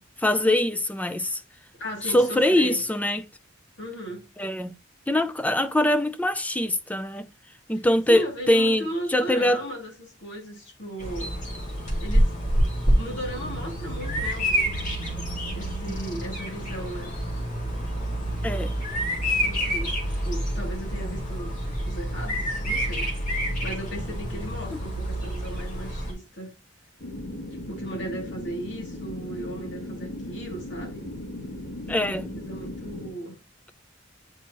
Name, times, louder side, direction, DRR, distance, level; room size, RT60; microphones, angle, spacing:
voice 1, 0.0-1.4 2.0-3.2 4.4-4.7 5.1-7.3 7.7-9.6 18.4-18.7 31.9-32.3, left 1 dB, 10° left, 0.5 m, -23 dB
voice 2, 1.8-2.8 3.8-4.2 8.1-11.3 12.0-12.3 12.9-15.0 15.5-17.1 19.4-21.6 21.8-26.5 27.7-31.0 32.2-33.4, right 1 dB, 65° left, 2.8 m, -36 dB
Bird vocalization bird call bird song, 11.0-26.1, equal, 40° left, 2.1 m, -27 dB
sound 1, 27.0-33.1, left 1 dB, 90° left, 2.9 m, -37 dB
8.1 x 4.3 x 3.0 m
head